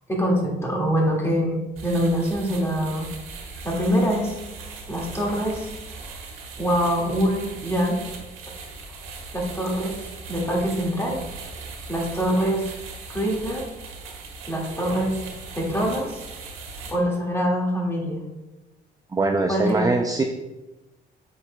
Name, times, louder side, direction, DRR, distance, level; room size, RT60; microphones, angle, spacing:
voice 1, 0.1-3.1 3.6-4.4 4.9-6.2 6.6-8.0 9.3-10.0 10.3-11.2 11.9-12.7 13.1-13.7 14.1-14.2 14.5-15.2 15.6-16.2 16.9-18.2 19.5-19.9, equal, 15° left, -2 dB, 2.0 m, -24 dB
sound 1, 1.8-16.9, right 4 dB, 85° right, 1.5 m, -39 dB
voice 2, 19.1-20.2, right 3 dB, 20° right, 4 dB, 0.4 m, -22 dB
8.0 x 6.1 x 2.2 m, 1.1 s
cardioid pair, 90°, 20 cm